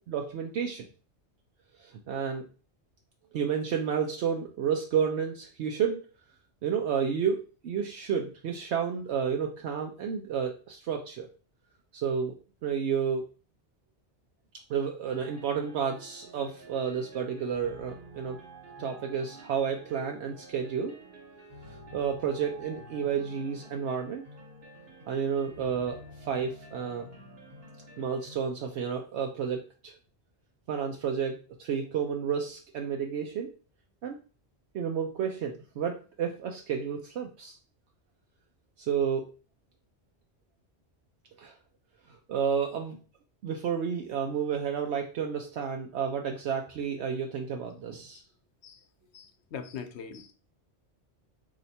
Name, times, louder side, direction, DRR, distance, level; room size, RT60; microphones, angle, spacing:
voice 1, 0.1-0.9 1.8-2.5 3.3-6.1 6.6-11.3 11.9-12.3 12.6-13.3 14.7-18.4 18.8-21.0 21.9-24.2 25.1-27.1 28.0-30.0 30.7-33.5 34.0-34.2 34.7-37.6 38.8-39.3 41.4-41.5 42.1-43.0 43.4-48.2, right 7 dB, 75° right, 3 dB, 0.9 m, -31 dB
sound 1, 15.0-28.4, right 1 dB, 50° right, 1.3 m, -49 dB
voice 2, 49.1-50.3, left 6 dB, 75° left, 8 dB, 0.9 m, -42 dB
4.3 x 2.8 x 4.1 m, 0.36 s
omnidirectional pair, 1.2 m